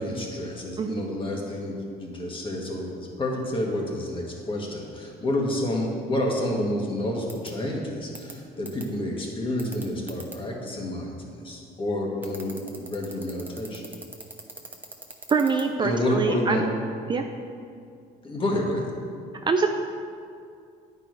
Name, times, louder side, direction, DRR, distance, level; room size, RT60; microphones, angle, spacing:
voice 1, 0.0-13.8 15.8-16.7 18.2-18.9, left 1 dB, 30° left, -1 dB, 1.6 m, -29 dB
sound 1, 7.3-7.5 8.1-8.3 8.6-8.8 9.6-10.3 12.2-15.6, right 2 dB, 10° right, 1.0 m, -40 dB
voice 2, 15.3-16.6 17.1-17.2 19.5-19.7, right 5 dB, 30° right, 5 dB, 0.4 m, -24 dB
9.7 x 4.7 x 4.7 m, 2.4 s
cardioid pair, 110°, 17 cm